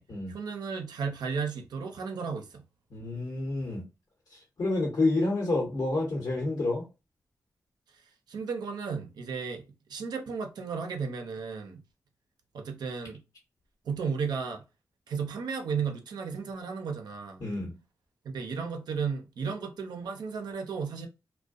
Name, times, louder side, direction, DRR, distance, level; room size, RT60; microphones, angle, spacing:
voice 1, 0.3-2.6 8.3-9.6 9.9-11.8 12.5-13.2 13.8-14.6 15.1-17.4 18.2-21.1, right 5 dB, 85° right, 0.5 m, -34 dB
voice 2, 2.9-3.8 4.3-6.8 17.4-17.7, left 2 dB, 70° left, 0.9 m, -29 dB
2.5 x 2.1 x 2.3 m
cardioid pair, 45°, 7 cm